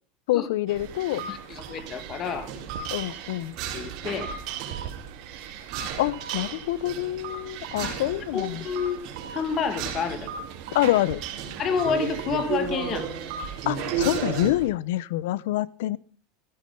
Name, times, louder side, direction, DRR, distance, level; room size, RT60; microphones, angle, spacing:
voice 1, 0.3-1.3 2.9-3.5 6.0-8.6 10.7-11.2 13.7-16.0, left 15 dB, 75° left, 21 dB, 0.8 m, -26 dB
sound 1, 0.7-14.5, right 7 dB, 50° right, 4.5 m, -35 dB
sound 2, 0.8-14.7, right 5 dB, 65° right, 3.4 m, -40 dB
voice 2, 1.3-2.5 3.7-4.3 7.8-7.9 8.3-9.0 9.3-10.3 11.6-13.1, left 6 dB, 35° left, 12 dB, 1.8 m, -29 dB
16.0 x 14.0 x 5.5 m, 0.40 s
supercardioid pair, 145°, 0 cm